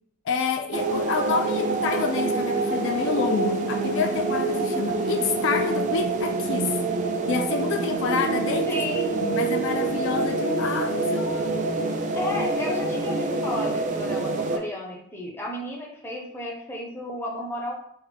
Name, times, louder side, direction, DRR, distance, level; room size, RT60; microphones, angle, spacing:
voice 1, 0.3-6.8 7.3-8.7 9.1-11.5, left 5 dB, 65° left, 5 dB, 0.3 m, -28 dB
sound 1, 0.7-14.6, right 3 dB, 35° right, 0.3 m, -26 dB
voice 2, 8.7-9.2 12.1-17.7, left 1 dB, 10° left, -1 dB, 0.6 m, -33 dB
3.3 x 2.1 x 3.4 m, 0.70 s
head